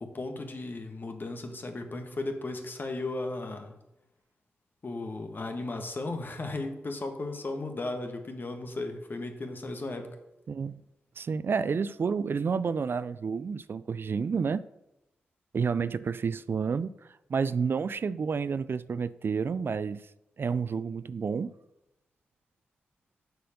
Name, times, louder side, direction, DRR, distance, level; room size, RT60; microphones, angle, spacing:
voice 1, 0.0-3.7 4.8-10.2, left 2 dB, 45° left, 1.4 m, -35 dB
voice 2, 10.5-10.8 11.2-14.6 15.5-16.9 17.3-20.1 20.4-21.5, right 5 dB, 55° right, 0.3 m, -30 dB
6.6 x 4.6 x 6.5 m
supercardioid pair, 40°, 5 cm